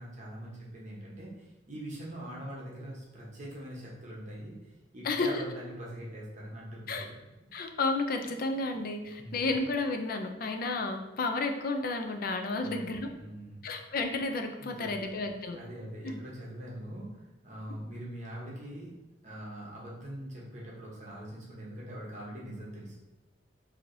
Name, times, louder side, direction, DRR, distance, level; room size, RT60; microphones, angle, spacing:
voice 1, 0.0-4.5 4.9-7.1 9.2-9.3 12.6-13.6 14.6-15.2 15.6-18.9 19.2-23.0, right 1 dB, 40° right, -4 dB, 0.9 m, -43 dB
voice 2, 5.0-5.4 6.9-7.1 7.5-13.1 13.6-15.6 16.0-16.2, left 3 dB, 55° left, 5 dB, 0.4 m, -32 dB
4.6 x 2.7 x 2.6 m, 1.0 s
head